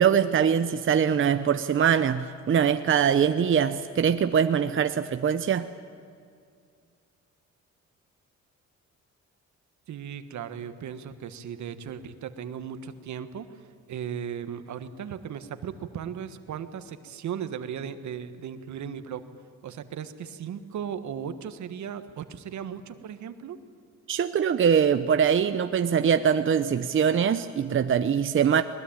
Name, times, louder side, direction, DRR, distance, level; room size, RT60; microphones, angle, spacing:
voice 1, 0.0-5.7 24.1-28.6, right 7 dB, 40° right, 9 dB, 0.8 m, -23 dB
voice 2, 9.9-19.2 19.6-23.6, right 8 dB, 70° right, 10 dB, 1.5 m, -37 dB
21.0 x 20.0 x 9.0 m, 2.3 s
cardioid pair, 90°, 30 cm